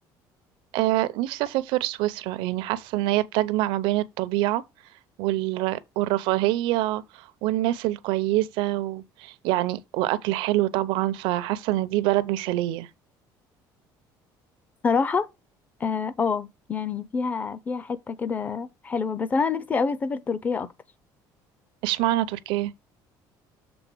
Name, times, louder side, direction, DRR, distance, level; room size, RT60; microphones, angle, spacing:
voice 1, 0.7-4.6 5.2-12.9 21.8-22.7, right 16 dB, 85° right, 0.6 m, -25 dB
voice 2, 14.8-15.3 15.8-20.7, left 5 dB, 20° left, 0.5 m, -27 dB
7.0 x 3.7 x 5.9 m
cardioid pair, 175°, 8 cm